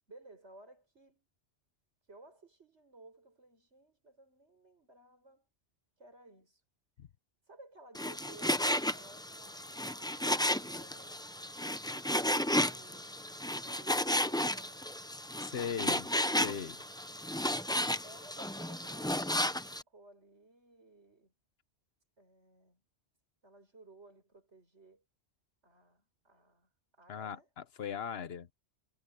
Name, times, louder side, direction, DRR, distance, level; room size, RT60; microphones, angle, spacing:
voice 1, 0.1-1.3 2.1-5.5 6.0-6.6 7.5-11.3 11.9-13.1 13.5-14.9 18.0-21.3 22.2-22.8 23.4-25.0 25.6-27.5, right 2 dB, 85° right, 6.6 m, -58 dB
Frying (food), 7.9-19.8, left 1 dB, 5° left, 0.5 m, -33 dB
voice 2, 15.4-16.1 16.4-16.8 27.1-28.5, left 7 dB, 65° left, 1.1 m, -39 dB
omnidirectional pair, 1.1 m